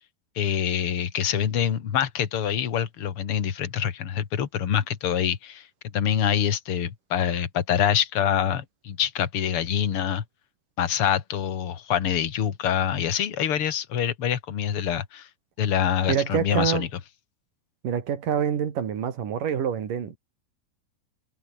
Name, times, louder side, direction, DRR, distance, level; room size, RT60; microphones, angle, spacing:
voice 1, 0.4-5.7 5.9-10.2 10.8-15.3 15.6-16.9, left 9 dB, 45° left, 2.3 m, -25 dB
voice 2, 16.1-16.9 17.8-20.2, right 8 dB, 65° right, 4.1 m, -26 dB
omnidirectional pair, 4.1 m